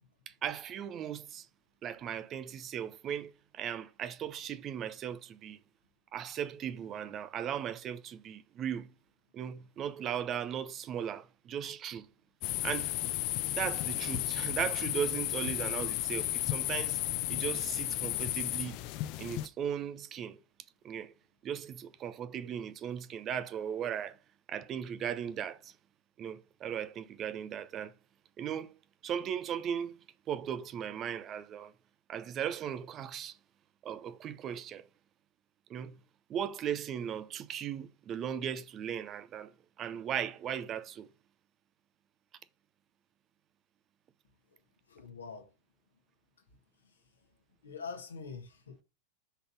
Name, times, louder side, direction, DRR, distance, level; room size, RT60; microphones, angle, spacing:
voice 1, 0.3-1.5 1.8-5.6 6.1-8.9 9.3-12.1 12.6-12.9 13.6-17.0 17.3-18.8 19.2-20.4 20.8-21.1 21.4-24.2 24.5-25.7 26.2-27.9 28.4-28.7 29.0-30.0 30.3-31.7 32.1-33.4 33.8-34.9 35.7-36.0 36.3-39.5 39.8-41.1, right 9 dB, 30° right, 0.7 m, -37 dB
sound 1, 12.4-19.5, left 16 dB, 45° left, 0.5 m, -33 dB
voice 2, 44.9-45.5 46.8-47.0 47.6-48.8, left 5 dB, 70° left, 1.3 m, -44 dB
5.6 x 4.0 x 6.0 m
figure-of-eight pair, 90°, 0 cm